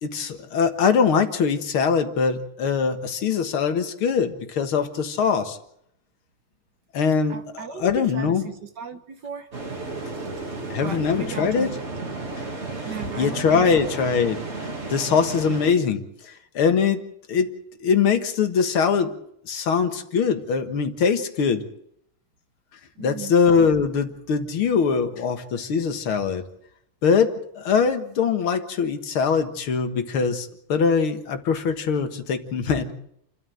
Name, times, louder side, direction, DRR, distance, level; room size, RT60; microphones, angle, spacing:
voice 1, 0.0-5.6 6.9-7.4 7.7-8.5 10.7-11.7 13.2-14.4 14.9-16.0 16.6-17.0 17.3-17.5 17.8-19.1 19.5-21.6 23.0-26.4 27.0-32.9, left 6 dB, 80° left, 7 dB, 2.4 m, -22 dB
voice 2, 7.3-9.5 10.1-10.3 10.8-12.1 12.9-13.9 23.0-23.3, right 6 dB, 55° right, 9 dB, 1.8 m, -37 dB
sound 1, 9.5-15.7, right 3 dB, 30° right, 2.7 m, -33 dB
29.0 x 13.0 x 7.9 m, 0.73 s
omnidirectional pair, 2.3 m